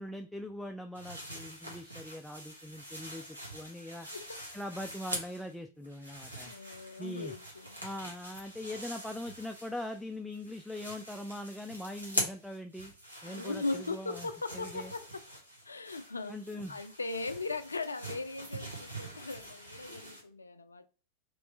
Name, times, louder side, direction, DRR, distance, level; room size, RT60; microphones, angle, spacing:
voice 1, 0.0-4.1 4.5-6.5 7.0-7.3 7.8-12.9 13.2-14.3 14.5-14.9 16.3-16.8, left 1 dB, 5° left, 0.3 m, -41 dB
sound 1, 0.9-5.5 5.8-10.0 10.3-20.2, right 1 dB, 85° right, 1.1 m, -43 dB
voice 2, 4.1-4.4 6.4-7.8 13.2-15.3 15.6-20.9, left 3 dB, 80° left, 0.3 m, -39 dB
3.0 x 3.0 x 3.1 m
figure-of-eight pair, 90°, 0 cm